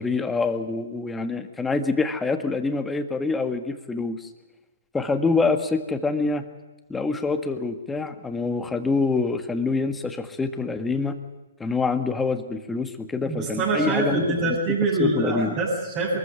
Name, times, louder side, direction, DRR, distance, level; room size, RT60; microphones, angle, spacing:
voice 1, 0.0-4.3 4.9-6.4 6.9-11.2 11.6-14.5 15.0-15.6, left 3 dB, 10° left, 8 dB, 1.7 m, -26 dB
voice 2, 13.2-16.2, right 2 dB, 35° right, -7 dB, 7.4 m, -24 dB
23.0 x 14.5 x 9.0 m, 1.1 s
hypercardioid pair, 145°, 0 cm